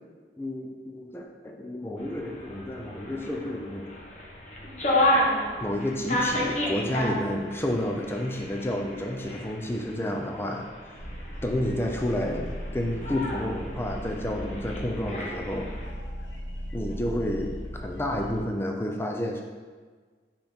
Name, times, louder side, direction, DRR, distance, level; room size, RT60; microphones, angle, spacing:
voice 1, 0.4-3.9 5.6-10.7 11.0-11.1 11.4-15.7 16.7-17.6 17.8-19.4, left 1 dB, 15° left, 2 dB, 0.4 m, -30 dB
sound 1, 2.0-15.9, left 1 dB, 40° left, 1.1 m, -32 dB
sound 2, 10.9-18.4, equal, 85° left, 1.1 m, -38 dB
7.7 x 4.4 x 3.5 m, 1.5 s
head